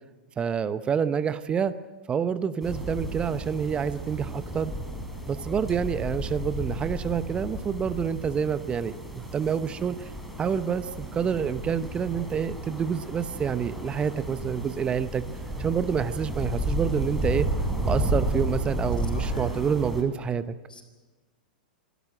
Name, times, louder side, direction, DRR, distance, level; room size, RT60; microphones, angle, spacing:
voice 1, 0.4-1.7 2.1-4.7 5.3-10.1 10.4-15.2 15.6-17.5 17.8-20.5, right 7 dB, 20° right, 13 dB, 0.9 m, -28 dB
sound 1, 2.6-20.0, right 1 dB, ahead, 4.2 m, -32 dB
voice 2, 19.1-19.6 20.7-20.8, left 2 dB, 85° left, 6 dB, 4.2 m, -43 dB
26.5 x 12.5 x 8.9 m, 1.3 s
figure-of-eight pair, 100°, 5 cm